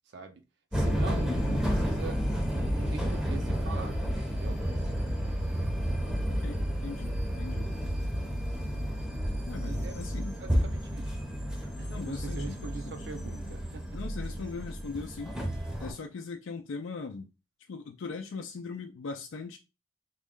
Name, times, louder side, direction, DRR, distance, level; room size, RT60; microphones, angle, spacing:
voice 1, 0.1-0.4 0.7-2.2 2.7-4.0 4.3-4.6 8.5-8.9 9.5-11.2 11.5-14.0, right 4 dB, 60° right, 0.5 m, -43 dB
sound 1, 0.7-15.9, equal, 5° right, 0.6 m, -31 dB
voice 2, 6.3-7.7 9.5-10.4 11.9-13.1 13.9-15.4 15.8-17.3 17.6-19.6, left 4 dB, 90° left, 0.4 m, -40 dB
3.5 x 2.1 x 3.6 m
head